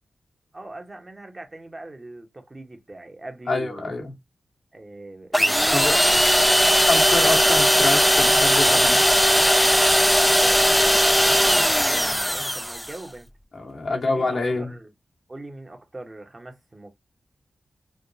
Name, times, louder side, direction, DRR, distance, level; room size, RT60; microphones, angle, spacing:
voice 1, 0.5-3.9 4.7-6.8 7.2-7.7 10.1-13.3 13.9-14.9 15.3-16.9, right 2 dB, 35° right, 1.1 m, -41 dB
voice 2, 3.5-4.1 5.7-6.0 6.9-9.0 13.5-14.7, left 3 dB, 65° left, 1.2 m, -26 dB
sound 1, 5.3-13.0, equal, ahead, 0.4 m, -18 dB
3.4 x 2.2 x 2.7 m
cardioid pair, 40°, 0 cm